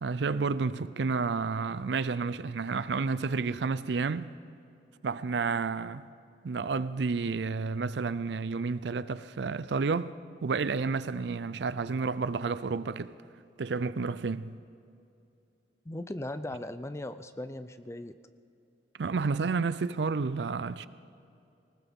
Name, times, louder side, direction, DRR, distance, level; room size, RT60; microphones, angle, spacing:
voice 1, 0.0-4.4 5.0-6.1 6.4-13.1 13.6-14.6 19.0-20.9, right 4 dB, 75° right, 0.5 m, -30 dB
voice 2, 15.8-18.2, left 1 dB, 15° left, 0.5 m, -38 dB
19.5 x 19.5 x 3.6 m
head